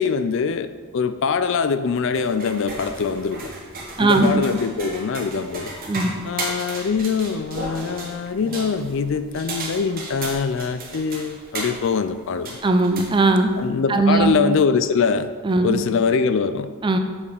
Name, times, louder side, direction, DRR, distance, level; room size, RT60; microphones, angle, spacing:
voice 1, 0.0-3.5 4.0-5.7 6.2-12.6 13.6-15.3 15.6-16.7, left 5 dB, 60° left, 12 dB, 0.4 m, -23 dB
sound 1, 2.0-13.7, right 2 dB, 40° right, 1.3 m, -35 dB
voice 2, 4.0-4.4 5.9-6.1 12.6-13.5 13.9-14.4 15.4-15.8 16.8-17.0, right 3 dB, 20° right, 6 dB, 0.4 m, -18 dB
7.1 x 4.9 x 5.2 m, 1.5 s
head